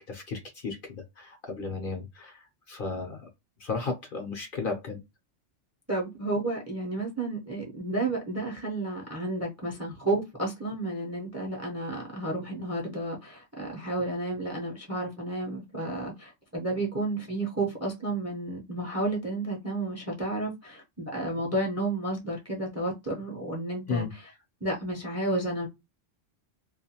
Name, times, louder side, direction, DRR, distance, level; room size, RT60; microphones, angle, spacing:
voice 1, 0.0-3.3 3.6-5.0 23.9-24.1, left 4 dB, 55° left, 0.7 m, -34 dB
voice 2, 5.9-24.3 24.6-25.7, right 2 dB, 20° right, 0.5 m, -31 dB
2.4 x 2.2 x 2.7 m
omnidirectional pair, 1.2 m